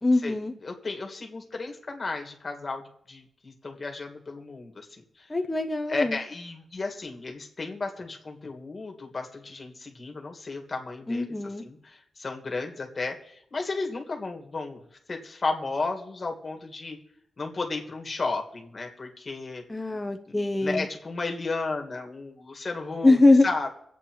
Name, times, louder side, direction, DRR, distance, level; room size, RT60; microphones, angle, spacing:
voice 1, 0.0-0.5 5.3-6.2 11.1-11.6 19.7-20.9 23.0-23.5, left 2 dB, 15° left, 5 dB, 0.5 m, -22 dB
voice 2, 0.6-4.9 5.9-14.8 15.1-17.0 17.4-19.6 20.6-23.2 23.4-23.7, left 3 dB, 35° left, 3 dB, 1.7 m, -33 dB
25.0 x 8.4 x 3.0 m, 0.75 s
wide cardioid pair, 125°, 0 cm